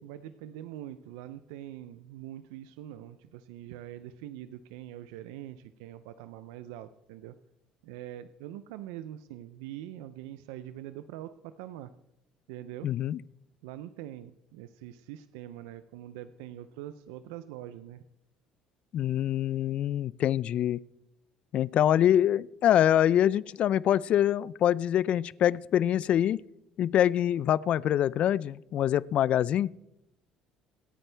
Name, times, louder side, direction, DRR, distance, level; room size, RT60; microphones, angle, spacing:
voice 1, 0.0-7.3 7.8-11.9 12.5-12.9 13.6-18.0, right 12 dB, 90° right, 0.5 m, -43 dB
voice 2, 12.8-13.2 18.9-20.8 21.5-26.4 26.8-29.7, left 11 dB, 60° left, 0.4 m, -25 dB
26.5 x 8.9 x 3.4 m
supercardioid pair, 80°, 2 cm